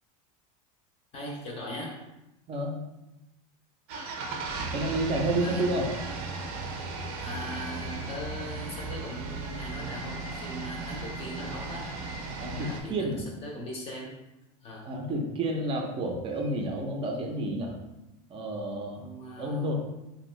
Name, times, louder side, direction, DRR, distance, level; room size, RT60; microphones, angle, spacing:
voice 1, 1.1-2.0 5.4-5.7 7.2-11.9 12.5-14.2 14.6-15.0 18.9-19.7, equal, 35° left, -1 dB, 0.6 m, -40 dB
sound 1, 3.9-12.8, right 3 dB, 75° right, 0.6 m, -36 dB
voice 2, 4.7-5.9 12.4-13.2 14.8-17.7 18.3-19.0 19.4-19.7, right 1 dB, 30° right, 2 dB, 0.5 m, -30 dB
2.6 x 2.1 x 3.1 m, 0.95 s
supercardioid pair, 130°, 19 cm